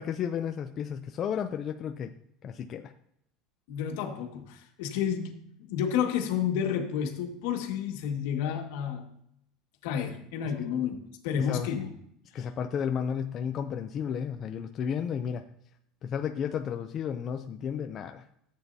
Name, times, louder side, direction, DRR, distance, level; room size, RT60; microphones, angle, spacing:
voice 1, 0.0-2.1 2.4-2.9 11.4-11.7 12.3-15.4 16.0-18.2, left 8 dB, 30° left, 6 dB, 0.4 m, -33 dB
voice 2, 3.7-9.1 9.8-11.0 11.2-11.9 12.3-12.5, left 8 dB, 70° left, 3 dB, 1.7 m, -31 dB
14.5 x 8.2 x 2.7 m, 0.73 s
cardioid pair, 175°, 0 cm